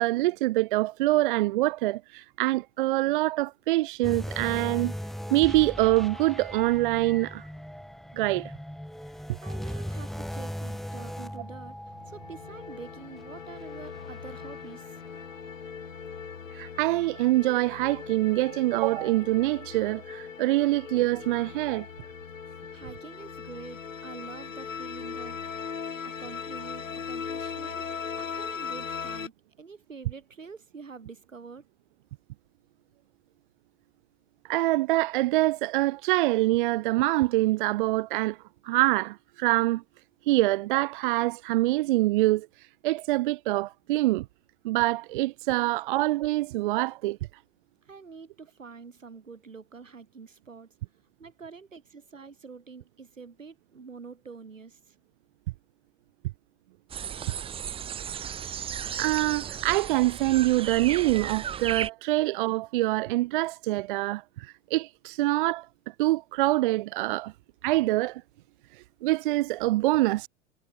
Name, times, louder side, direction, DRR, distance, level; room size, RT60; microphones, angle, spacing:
voice 1, 0.0-4.9 5.3-7.4 8.1-8.5 16.5-21.9 34.5-38.4 38.6-39.8 40.3-42.5 42.8-44.3 44.6-47.2 59.0-65.7 66.0-67.3 67.6-68.2 69.0-70.3, right 18 dB, 45° right, 0.4 m, -25 dB
sound 1, 4.0-15.5 15.9-16.1 16.7-16.8, equal, ahead, 1.6 m, -39 dB
voice 2, 9.0-11.8 12.1-15.0 22.0-22.1 22.7-25.4 25.7-27.9 28.2-29.3 29.6-31.7 47.9-50.7 51.2-55.0, right 5 dB, 80° right, 2.0 m, -46 dB
sound 2, 11.9-29.3, left 6 dB, 85° left, 0.8 m, -39 dB
sound 3, 56.9-61.9, right 8 dB, 15° right, 0.7 m, -35 dB
figure-of-eight pair, 90°, 38 cm